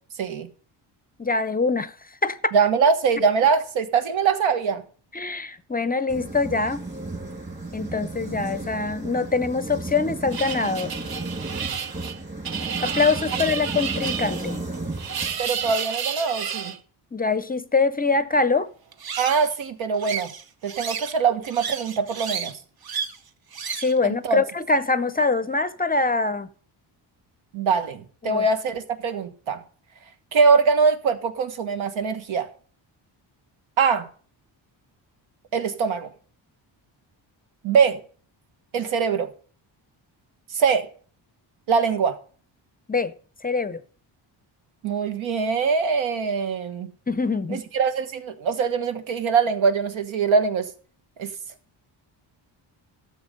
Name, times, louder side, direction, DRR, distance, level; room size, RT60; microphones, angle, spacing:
voice 1, 1.2-1.9 2.2-2.5 5.1-6.8 7.7-10.9 12.8-14.6 17.1-18.7 23.8-26.5 28.2-28.4 42.9-43.1 43.4-43.8 47.1-47.6, left 4 dB, 20° left, 0.5 m, -24 dB
voice 2, 2.5-4.8 15.4-16.7 19.2-20.3 20.6-22.5 24.0-24.4 27.5-29.6 30.3-32.5 33.8-34.1 35.5-36.1 37.6-38.0 38.7-39.3 40.5-40.9 41.7-42.2 44.8-46.9 47.5-50.7 51.2-51.3, right 5 dB, 85° right, 1.4 m, -22 dB
sound 1, 6.1-15.7, right 2 dB, 20° right, 2.0 m, -34 dB
sound 2, 10.3-16.8 18.9-19.5 20.0-21.2 21.4-22.5 22.8-23.2 23.5-24.0, right 7 dB, 50° right, 0.9 m, -31 dB
12.5 x 7.1 x 5.3 m
cardioid pair, 110°, 46 cm